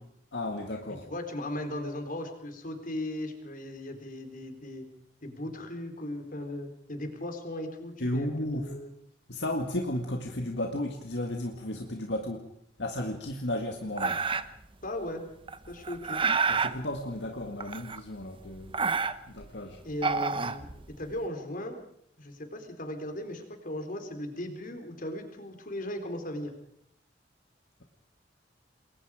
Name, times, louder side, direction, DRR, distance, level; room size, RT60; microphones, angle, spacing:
voice 1, 0.3-1.1 8.0-8.7 9.3-12.5 12.8-14.2 16.5-18.8 19.3-19.8, left 1 dB, 65° left, 3 dB, 2.0 m, -33 dB
voice 2, 1.1-4.9 5.2-8.9 14.8-15.2 15.7-16.2 19.8-20.7 21.0-21.8 22.2-26.5, left 1 dB, 50° left, 6 dB, 4.0 m, -37 dB
sound 1, 14.0-14.6 15.5-16.8 17.6-18.2 18.5-19.5 19.9-21.1, right 5 dB, 30° right, 1.0 m, -29 dB
28.0 x 22.0 x 5.0 m, 0.71 s
head